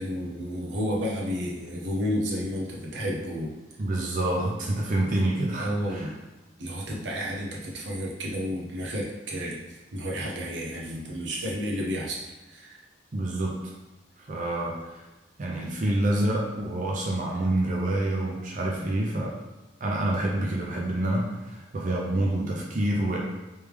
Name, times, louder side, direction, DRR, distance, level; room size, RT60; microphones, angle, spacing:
voice 1, 0.0-3.5 5.6-6.2 6.6-12.2 12.5-12.8, equal, 85° right, -2 dB, 0.8 m, -31 dB
voice 2, 3.8-6.1 13.1-13.7 14.3-14.8 15.4-19.3 19.8-23.2, right 1 dB, 45° right, -3 dB, 0.5 m, -27 dB
3.3 x 3.2 x 3.4 m, 1.1 s
head